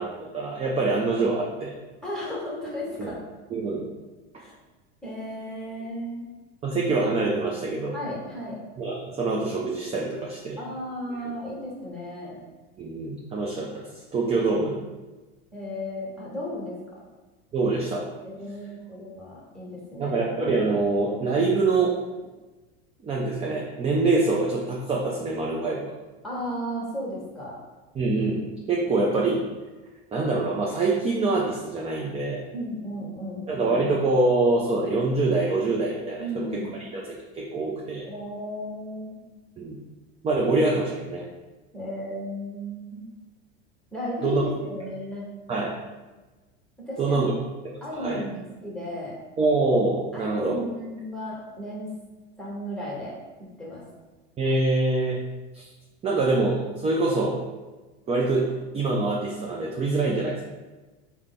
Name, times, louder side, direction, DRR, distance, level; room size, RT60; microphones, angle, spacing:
voice 1, 0.0-1.7 3.0-3.1 3.5-3.8 6.6-8.0 8.8-10.6 12.8-14.7 17.5-18.1 20.0-21.9 23.0-25.9 27.9-29.4 30.1-32.4 33.5-38.1 39.6-39.8 40.2-41.3 44.2-44.4 45.5-45.7 47.0-47.3 47.9-48.2 49.4-50.6 54.4-55.2 55.5-55.7 56.0-57.4 58.1-60.4, right 3 dB, 20° right, -2 dB, 0.5 m, -25 dB
voice 2, 2.0-3.2 4.4-4.5 5.0-6.3 7.9-8.6 10.6-12.4 14.3-14.8 15.5-17.0 18.2-20.2 26.2-27.6 32.5-33.5 36.2-36.8 38.1-39.2 41.7-43.0 43.9-45.3 46.8-47.3 47.8-49.2 50.1-51.9 52.4-53.8, equal, ahead, -5 dB, 1.3 m, -34 dB
3.3 x 2.2 x 3.9 m, 1.2 s
hypercardioid pair, 95°, 31 cm